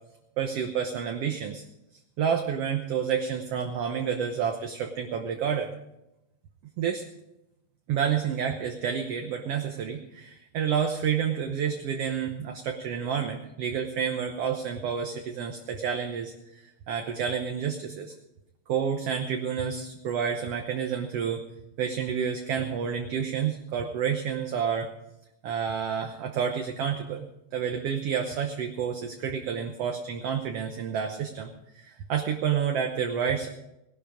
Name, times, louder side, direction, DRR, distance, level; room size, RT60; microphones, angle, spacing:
voice 1, 0.4-1.6 2.2-5.7 6.8-7.0 7.9-18.1 18.7-21.5 21.8-24.9 25.4-27.3 27.5-33.5, right 7 dB, 65° right, 4 dB, 1.8 m, -29 dB
17.5 x 12.0 x 5.0 m, 0.89 s
omnidirectional pair, 3.4 m